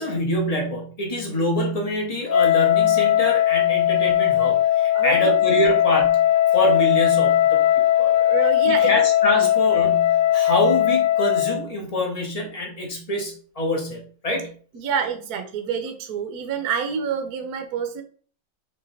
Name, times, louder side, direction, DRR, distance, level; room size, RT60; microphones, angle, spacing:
voice 1, 0.0-6.2 6.5-7.6 8.0-8.1 8.7-14.5, equal, 25° left, -1 dB, 0.8 m, -25 dB
Wind instrument woodwind instrument, 2.3-11.6, left 11 dB, 70° left, 1.2 m, -19 dB
voice 2, 4.9-5.3 5.6-5.7 8.2-9.0 9.4-9.5 14.7-18.0, right 7 dB, 65° right, 6 dB, 1.0 m, -27 dB
4.7 x 3.4 x 3.2 m, 0.43 s
omnidirectional pair, 2.2 m